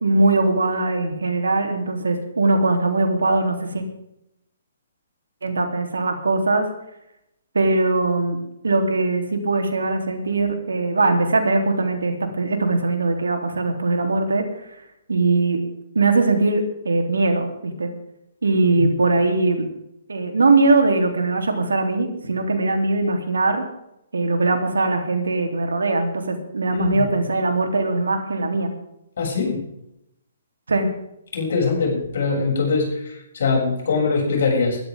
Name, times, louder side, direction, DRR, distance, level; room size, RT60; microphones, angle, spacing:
voice 1, 0.0-3.8 5.4-6.7 7.5-8.4 8.6-14.4 15.1-15.6 15.9-17.9 18.4-19.7 20.1-23.6 24.1-28.7 30.7-30.9, right 3 dB, 75° right, 5 dB, 3.3 m, -21 dB
voice 2, 26.7-27.0 29.2-29.6 31.3-34.8, left 4 dB, 60° left, 0 dB, 7.3 m, -22 dB
21.0 x 13.5 x 3.7 m, 0.82 s
figure-of-eight pair, 130°, 0 cm